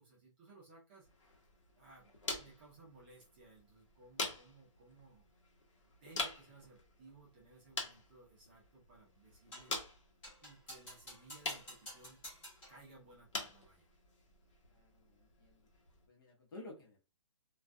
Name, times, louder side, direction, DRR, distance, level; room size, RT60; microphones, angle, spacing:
voice 1, 0.0-1.4 1.8-5.3 5.8-9.8 10.4-12.2 12.7-13.9, right 3 dB, 20° right, -5 dB, 0.5 m, -60 dB
sound 1, 1.0-16.1, left 3 dB, 65° left, 0.9 m, -47 dB
sound 2, 9.5-9.8 10.2-12.8, equal, 10° left, 0.8 m, -52 dB
voice 2, 14.6-15.6 16.1-17.0, left 2 dB, 45° left, -2 dB, 0.9 m, -53 dB
2.3 x 2.3 x 2.5 m, 0.33 s
hypercardioid pair, 170°, 16 cm